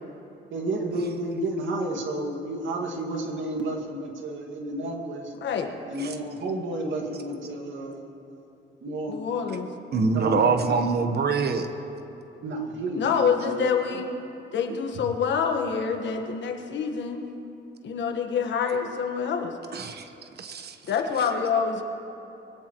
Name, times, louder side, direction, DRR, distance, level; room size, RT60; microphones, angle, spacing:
voice 1, 0.5-5.3 5.9-8.4 8.8-9.3 10.1-10.6 12.4-13.7 13.9-14.0, right 2 dB, 70° right, 2 dB, 2.2 m, -31 dB
voice 2, 9.1-9.7 13.0-14.1 14.5-17.2 17.8-19.6 20.9-21.8, left 6 dB, 65° left, 4 dB, 1.5 m, -26 dB
voice 3, 9.9-11.7 19.7-20.1 20.4-20.8, right 4 dB, 55° right, 8 dB, 1.2 m, -24 dB
22.5 x 17.5 x 3.1 m, 2.9 s
cardioid pair, 90°, 20 cm